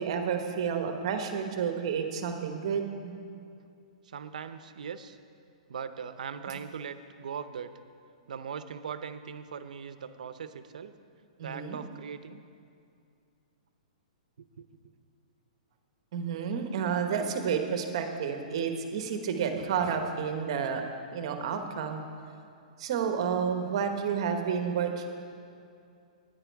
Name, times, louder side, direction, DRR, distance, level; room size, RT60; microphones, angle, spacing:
voice 1, 0.0-3.4 6.5-6.6 11.4-11.8 16.1-20.8 21.1-22.0 22.8-25.1, right 7 dB, 45° right, 6 dB, 1.1 m, -30 dB
voice 2, 4.0-5.2 5.7-7.7 8.3-10.9 11.4-12.4 14.6-14.7, right 7 dB, 80° right, 11 dB, 0.7 m, -40 dB
13.5 x 10.0 x 4.7 m, 2.4 s
hypercardioid pair, 170°, 4 cm